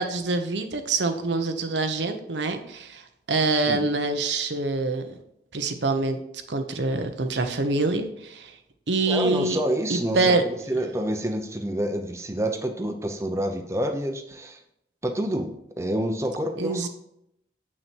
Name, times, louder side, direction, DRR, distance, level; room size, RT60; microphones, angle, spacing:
voice 1, 0.0-5.1 5.5-6.2 6.5-8.5 8.9-9.6 9.9-10.8 16.6-16.9, right 3 dB, 80° right, 6 dB, 1.0 m, -25 dB
voice 2, 9.1-14.6 15.0-16.9, right 1 dB, 15° right, 4 dB, 0.8 m, -28 dB
8.0 x 6.2 x 4.5 m, 0.77 s
head